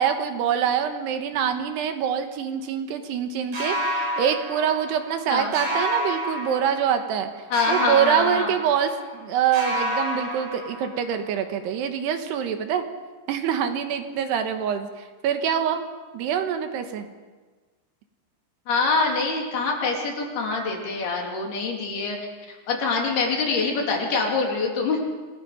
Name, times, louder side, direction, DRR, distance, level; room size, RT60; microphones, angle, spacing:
voice 1, 0.0-7.3 7.7-12.8 13.3-15.8 16.1-17.1, right 8 dB, 75° right, 7 dB, 3.2 m, -25 dB
sound 1, 3.5-5.2 5.5-7.2 7.5-9.2 9.5-11.2, equal, 55° right, 8.7 m, -29 dB
voice 2, 7.5-8.5 18.7-22.2 22.5-25.0, left 4 dB, 65° left, 0 dB, 4.9 m, -25 dB
27.5 x 21.0 x 5.1 m, 1.4 s
omnidirectional pair, 5.0 m